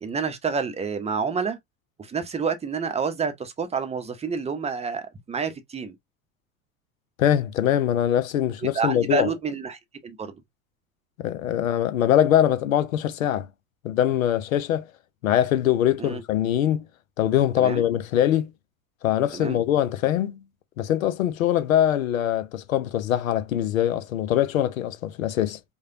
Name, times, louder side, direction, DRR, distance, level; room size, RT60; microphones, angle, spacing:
voice 1, 0.0-1.6 2.0-5.9 8.7-10.4 16.0-16.2 17.6-17.8 19.3-19.6, right 5 dB, 15° right, 0.8 m, -28 dB
voice 2, 7.2-9.3 11.2-13.5 13.8-14.9 15.2-16.9 17.2-18.5 19.0-20.4 20.8-25.6, left 11 dB, 70° left, 0.7 m, -23 dB
4.9 x 2.4 x 2.7 m
figure-of-eight pair, 75°, 42 cm